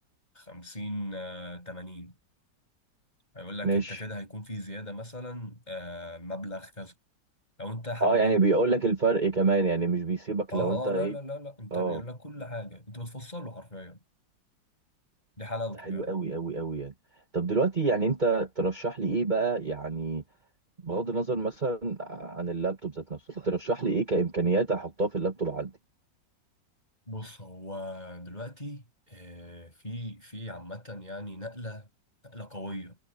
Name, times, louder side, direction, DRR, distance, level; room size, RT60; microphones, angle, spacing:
voice 1, 0.3-2.1 3.3-6.9 7.6-8.4 10.5-14.0 15.4-16.1 27.1-31.9 32.2-33.0, left 1 dB, 20° left, 7.8 m, -38 dB
voice 2, 3.6-4.0 8.0-11.1 11.7-12.0 15.8-16.9 17.3-20.2 20.8-25.7, right 3 dB, 25° right, 1.7 m, -27 dB
omnidirectional pair, 2.0 m